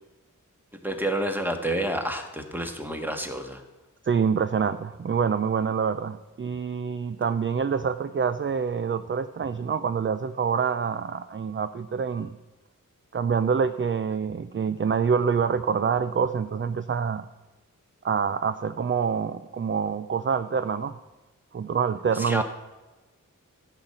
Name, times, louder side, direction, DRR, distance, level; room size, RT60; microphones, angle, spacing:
voice 1, 0.8-3.6 22.1-22.4, right 1 dB, 5° right, 4 dB, 1.6 m, -29 dB
voice 2, 4.0-12.4 13.1-17.3 18.0-21.0 21.5-22.4, right 6 dB, 40° right, 11 dB, 0.4 m, -26 dB
12.5 x 5.7 x 7.9 m, 1.1 s
wide cardioid pair, 65°, 33 cm